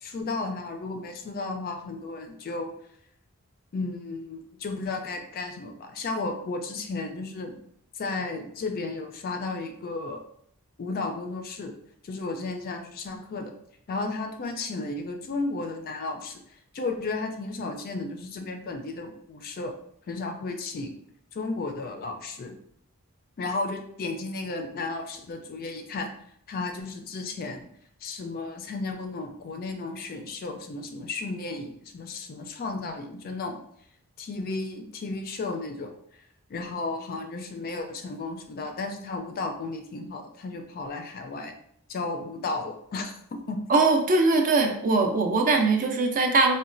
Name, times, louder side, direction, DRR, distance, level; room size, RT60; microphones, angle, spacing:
voice 1, 0.0-2.7 3.7-7.5 7.9-10.2 10.8-11.7 12.0-13.5 13.9-16.4 16.7-19.7 20.1-21.0 21.3-22.6 23.4-26.1 26.5-27.6 28.0-33.6 34.2-35.9 36.5-41.5 41.9-43.6, left 3 dB, 40° left, 5 dB, 0.3 m, -33 dB
voice 2, 43.7-46.5, right 3 dB, 40° right, 4 dB, 0.4 m, -21 dB
3.9 x 2.1 x 2.5 m, 0.69 s
head